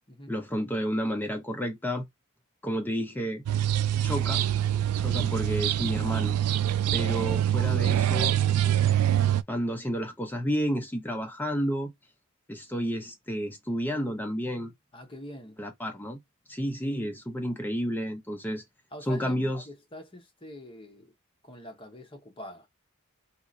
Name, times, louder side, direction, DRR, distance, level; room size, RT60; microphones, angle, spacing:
voice 1, 0.3-2.1 2.6-3.4 4.0-4.4 4.9-6.4 6.9-8.4 9.5-11.9 12.5-14.7 15.6-16.2 16.5-18.6 19.1-19.6, equal, 10° left, 0.5 m, -31 dB
sound 1, 3.5-9.4, right 11 dB, 90° right, 0.4 m, -25 dB
voice 2, 14.9-15.6 18.9-21.1 21.4-22.7, left 1 dB, 25° left, 0.9 m, -45 dB
2.8 x 2.5 x 3.9 m
head